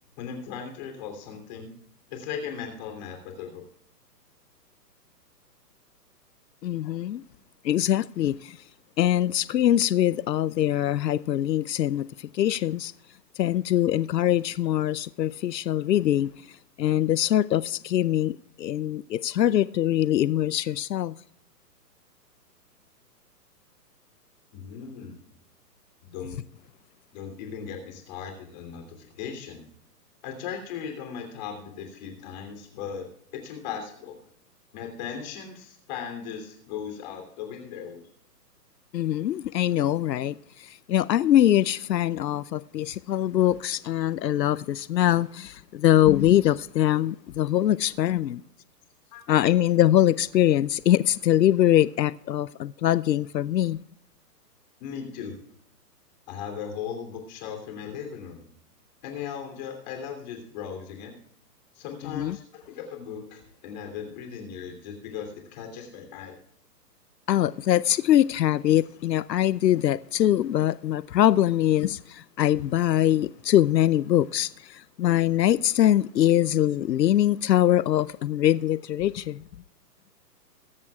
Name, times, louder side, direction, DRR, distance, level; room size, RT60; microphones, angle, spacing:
voice 1, 0.2-1.7 2.1-3.6 24.5-25.1 26.0-26.4 27.1-29.6 30.2-33.1 33.3-34.2 34.7-38.1 49.1-49.2 49.5-49.6 54.8-55.4 56.3-58.5 59.0-61.1 61.7-66.4, left 7 dB, 25° left, 3.1 m, -37 dB
voice 2, 6.6-7.2 7.6-8.6 9.0-12.9 13.4-16.3 16.8-21.1 38.9-48.4 49.3-53.8 62.0-62.4 67.3-79.4, left 12 dB, 90° left, 0.7 m, -23 dB
22.5 x 11.0 x 2.4 m
hypercardioid pair, 170°, 48 cm